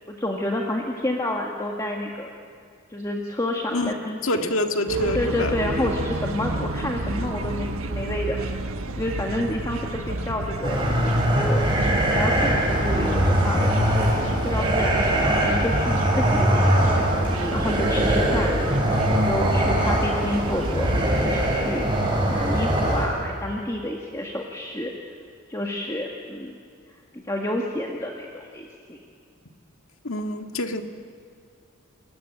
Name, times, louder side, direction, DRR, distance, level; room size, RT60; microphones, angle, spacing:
voice 1, 0.1-2.3 2.9-4.5 5.1-8.4 9.0-10.9 11.3-11.7 12.1-14.1 14.4-17.0 17.3-21.9 22.3-24.9 25.5-26.6 27.1-29.0, left 1 dB, 15° left, -1 dB, 1.8 m, -29 dB
voice 2, 4.2-5.6 30.0-30.8, left 2 dB, 75° left, 5 dB, 1.8 m, -26 dB
sound 1, 4.9-21.1, right 2 dB, 85° right, 1.3 m, -31 dB
sound 2, 10.6-23.1, right 1 dB, 20° right, 7.1 m, -22 dB
29.5 x 22.0 x 9.1 m, 2.3 s
head